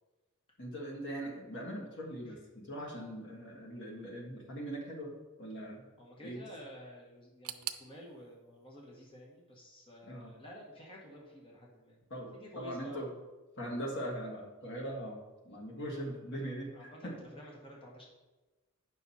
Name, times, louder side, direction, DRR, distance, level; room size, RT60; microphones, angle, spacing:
voice 1, 0.6-5.9 6.2-6.5 10.1-10.3 12.1-13.1 13.6-17.1, right 1 dB, 55° left, -2 dB, 1.6 m, -41 dB
voice 2, 6.0-12.0 12.3-13.3 16.7-18.1, equal, 25° left, -2 dB, 1.6 m, -51 dB
sound 1, 7.4-10.3 10.6-11.4 11.7-11.8 12.6-12.7, right 13 dB, 90° right, 0.5 m, -47 dB
9.2 x 6.1 x 4.2 m, 1.2 s
head